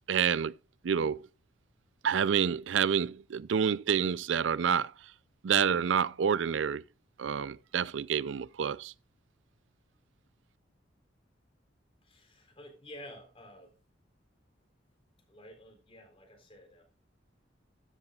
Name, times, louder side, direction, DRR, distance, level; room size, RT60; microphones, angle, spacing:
voice 1, 0.1-0.5 0.8-1.3 2.0-4.9 5.4-6.8 7.2-8.9, right 7 dB, 90° right, 0.4 m, -28 dB
voice 2, 12.0-13.7 15.3-16.8, equal, 30° left, 3.9 m, -51 dB
13.0 x 13.0 x 2.4 m
head